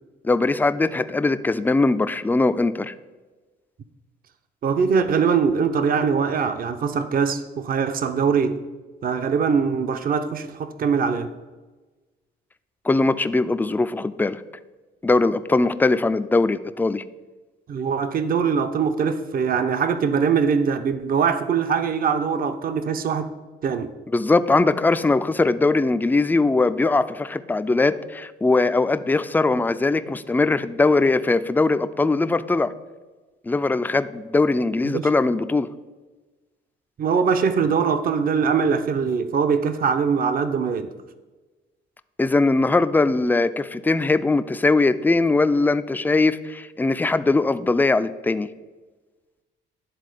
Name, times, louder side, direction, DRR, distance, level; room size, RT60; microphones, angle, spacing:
voice 1, 0.2-2.9 12.8-14.4 15.0-17.0 24.1-32.7 33.4-35.7 42.2-48.5, left 3 dB, 10° left, 0.3 m, -20 dB
voice 2, 4.6-8.6 9.0-11.3 17.7-23.3 23.6-23.9 34.8-35.1 37.0-40.9, right 6 dB, 45° right, 0.6 m, -22 dB
10.5 x 3.7 x 4.9 m
cardioid pair, 90°, 20 cm